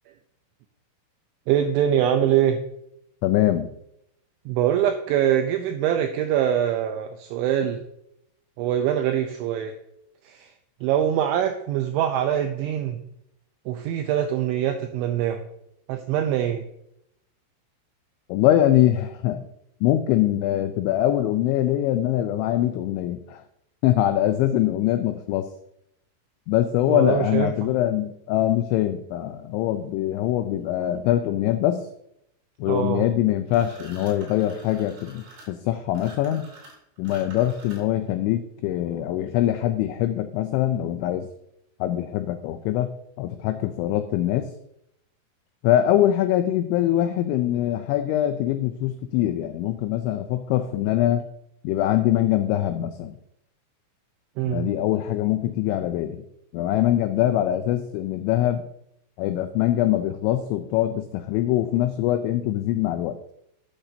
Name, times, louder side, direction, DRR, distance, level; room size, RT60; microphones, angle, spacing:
voice 1, 1.5-2.6 4.5-7.8 8.6-9.8 10.2-10.5 10.8-13.0 13.7-15.5 15.9-16.7 26.9-27.7 32.7-33.0 54.4-54.7, right 10 dB, 85° right, 6 dB, 2.7 m, -23 dB
voice 2, 3.2-3.7 18.3-19.5 19.8-23.4 23.8-25.5 26.5-31.9 32.6-36.5 37.0-41.3 41.8-42.9 43.2-44.5 45.6-51.3 51.6-53.2 54.5-56.2 56.5-58.6 59.2-63.2, left 13 dB, 90° left, 8 dB, 2.6 m, -23 dB
sound 1, 33.5-38.1, right 2 dB, 55° right, 4.8 m, -47 dB
12.0 x 8.2 x 2.7 m, 0.77 s
omnidirectional pair, 5.9 m